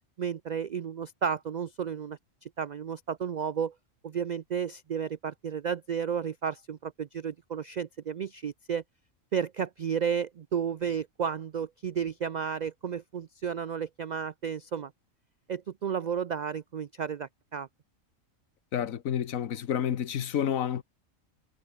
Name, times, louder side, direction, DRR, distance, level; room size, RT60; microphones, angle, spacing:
voice 1, 0.2-3.7 4.0-8.8 9.3-14.9 15.5-17.7, right 7 dB, 90° right, 0.3 m, -32 dB
voice 2, 18.7-20.8, left 9 dB, 80° left, 1.4 m, -29 dB
omnidirectional pair, 1.4 m